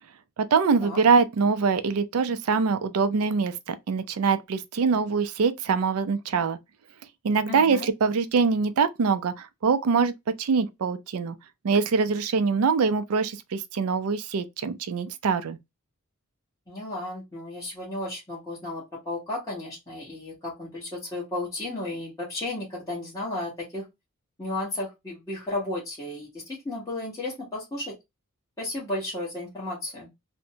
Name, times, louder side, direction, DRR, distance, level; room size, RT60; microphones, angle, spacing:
voice 1, 0.4-6.6 7.2-10.1 10.4-11.4 11.6-15.6, right 5 dB, 85° right, 0.4 m, -24 dB
voice 2, 7.5-7.9 16.7-23.9 24.4-27.9 28.6-30.1, left 2 dB, 15° left, 1.0 m, -33 dB
2.6 x 2.1 x 2.7 m
head